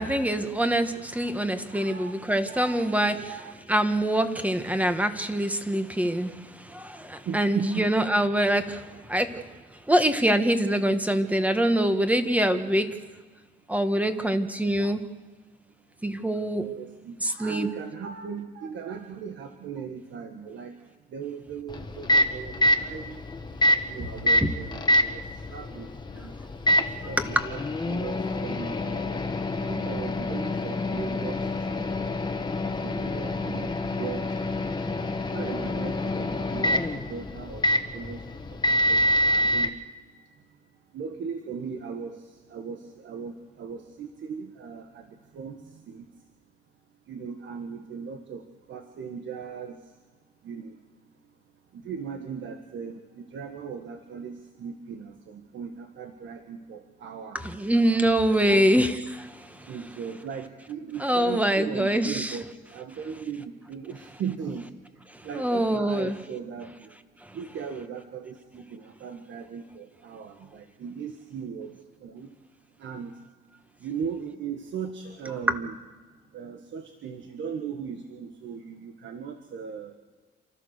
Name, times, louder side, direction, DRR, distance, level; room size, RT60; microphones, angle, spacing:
voice 1, 0.0-3.3 3.7-9.4 9.9-13.0 13.7-15.0 16.0-16.7 17.2-17.7 24.4-24.5 27.2-27.3 57.3-59.7 61.0-62.4 65.1-66.1, right 1 dB, 5° right, 8 dB, 1.6 m, -25 dB
voice 2, 1.7-2.1 2.5-3.6 7.3-7.9 16.6-20.7 21.1-23.2 23.9-25.2 25.5-26.3 26.8-29.2 29.6-31.4 31.7-31.9 32.8-34.5 35.0-38.2 38.7-39.0 39.3-39.8 40.9-42.2 42.5-45.0 45.3-46.1 47.1-48.4 48.7-49.8 50.4-50.8 51.9-57.4 58.4-58.7 59.7-64.7 65.2-66.7 67.3-71.7 72.0-72.3 72.8-73.1 73.8-75.8 76.3-80.0, right 6 dB, 70° right, 6 dB, 1.6 m, -38 dB
Microwave oven, 21.7-39.7, left 1 dB, 20° left, 1.5 m, -27 dB
28.5 x 13.5 x 6.7 m, 1.4 s
cardioid pair, 90°, 20 cm